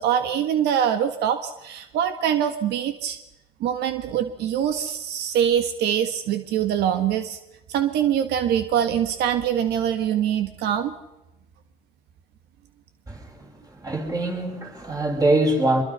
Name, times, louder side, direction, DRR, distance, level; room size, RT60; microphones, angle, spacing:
voice 1, 0.0-3.2 3.6-7.4 7.7-10.9, right 9 dB, 80° right, 9 dB, 1.6 m, -24 dB
voice 2, 13.1-15.8, right 2 dB, 20° right, 2 dB, 6.2 m, -24 dB
25.0 x 23.0 x 5.6 m, 0.91 s
cardioid pair, 110°, 17 cm